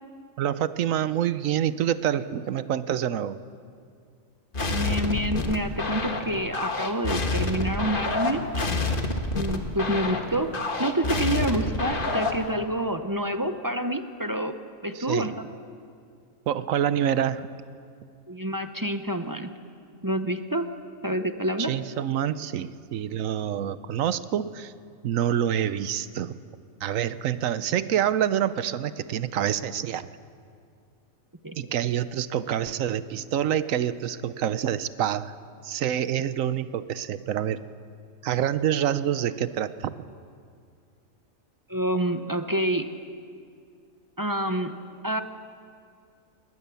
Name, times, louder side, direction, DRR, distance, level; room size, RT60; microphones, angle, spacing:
voice 1, 0.4-3.4 14.9-15.4 16.5-17.5 21.6-24.7 25.0-26.3 26.8-30.1 31.6-35.3 35.6-37.6 38.2-40.1, right 10 dB, 75° right, 14 dB, 1.1 m, -27 dB
sound 1, 4.5-12.5, left 2 dB, 40° left, 1.6 m, -28 dB
voice 2, 4.7-9.0 9.3-10.5 10.8-14.5 14.8-15.3 18.3-19.5 20.0-20.7 21.0-21.7 31.4-31.6 41.7-42.9 44.2-44.7 45.0-45.2, right 1 dB, 20° right, 8 dB, 0.6 m, -28 dB
19.5 x 19.5 x 7.0 m, 2.3 s
omnidirectional pair, 1.4 m